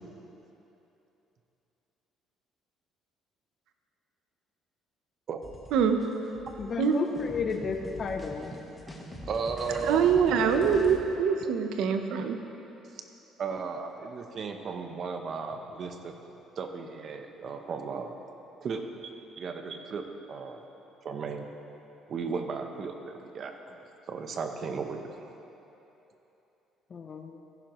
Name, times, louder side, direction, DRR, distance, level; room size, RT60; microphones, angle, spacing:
sound 1, 5.4-11.0, left 1 dB, 15° left, 1.1 m, -44 dB
voice 1, 6.6-8.5 26.9-27.4, left 5 dB, 35° left, 4 dB, 0.6 m, -32 dB
voice 2, 8.9-10.1 11.4-11.5 13.4-16.2 16.6-18.1 18.6-19.1 19.4-20.6 21.0-21.5 22.1-23.8 24.1-25.3, right 5 dB, 40° right, 6 dB, 0.8 m, -35 dB
voice 3, 9.8-12.4, right 7 dB, 75° right, 6 dB, 0.8 m, -24 dB
15.0 x 11.0 x 3.1 m, 3.0 s
cardioid pair, 145°, 0 cm